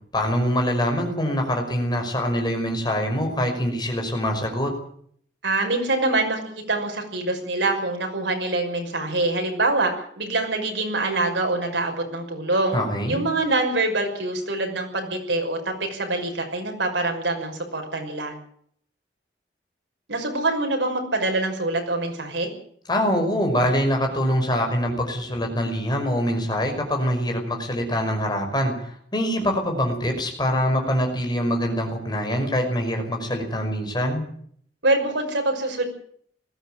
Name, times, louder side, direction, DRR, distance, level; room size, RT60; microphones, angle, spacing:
voice 1, 0.1-4.7 12.7-13.2 22.9-34.2, equal, 25° left, 3 dB, 5.5 m, -24 dB
voice 2, 5.4-12.8 13.1-18.3 20.1-22.5 34.8-35.8, right 2 dB, 85° right, 3 dB, 6.1 m, -25 dB
20.0 x 15.5 x 9.0 m, 0.63 s
head